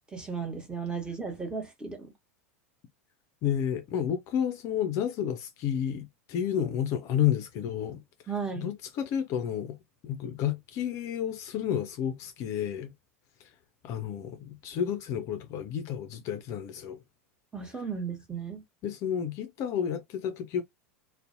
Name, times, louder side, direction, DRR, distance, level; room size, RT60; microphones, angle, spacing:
voice 1, 0.1-2.1 8.3-8.7 17.5-18.6, right 5 dB, 10° right, 1.0 m, -35 dB
voice 2, 3.4-8.0 8.6-9.8 10.0-12.9 13.4-13.5 13.8-17.0 18.8-20.6, left 9 dB, 45° left, 0.4 m, -31 dB
2.5 x 2.1 x 2.5 m
figure-of-eight pair, 85°, 8 cm